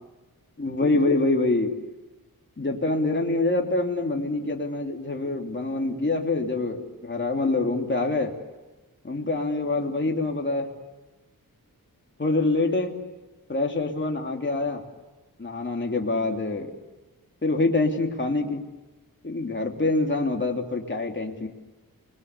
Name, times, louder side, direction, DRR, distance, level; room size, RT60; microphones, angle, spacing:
voice 1, 0.6-1.7 2.6-8.3 9.0-10.7 12.2-12.9 13.5-14.8 15.4-16.7 17.4-18.6 19.2-21.5, left 2 dB, 30° left, 2 dB, 3.0 m, -25 dB
29.5 x 21.5 x 8.2 m, 1.2 s
wide cardioid pair, 85°, 36 cm